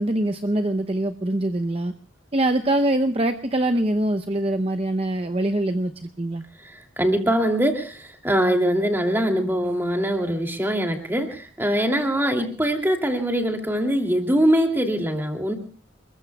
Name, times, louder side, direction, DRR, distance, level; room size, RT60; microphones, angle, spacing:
voice 1, 0.0-1.9 2.3-6.4, right 1 dB, 30° right, 7 dB, 0.7 m, -23 dB
voice 2, 6.6-15.5, equal, 10° right, 3 dB, 2.7 m, -23 dB
29.0 x 22.0 x 2.3 m, 0.39 s
head